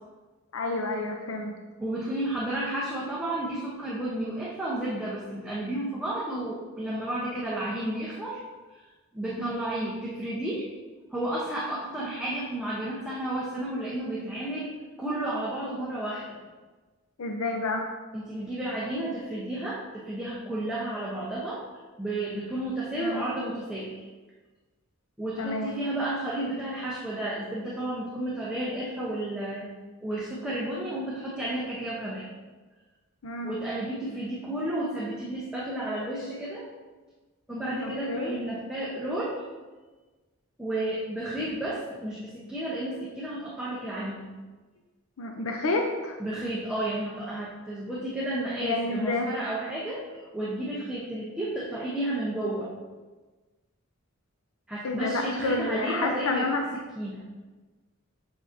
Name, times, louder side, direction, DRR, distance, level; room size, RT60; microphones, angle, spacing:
voice 1, 0.5-1.6 9.4-9.5 17.2-17.9 23.0-23.2 25.4-25.7 33.2-33.6 37.8-38.4 45.2-46.1 48.6-49.3 54.8-56.6, left 2 dB, 85° left, 2 dB, 0.6 m, -29 dB
voice 2, 1.8-8.4 8.7-8.8 9.1-10.6 11.1-14.7 15.0-16.4 18.1-21.6 22.0-24.0 25.2-29.7 30.0-32.3 33.4-36.7 37.5-39.4 40.6-44.3 46.2-52.7 54.7-56.6 57.0-57.2, right 1 dB, 5° right, -7 dB, 0.9 m, -32 dB
7.6 x 5.8 x 2.7 m, 1.3 s
head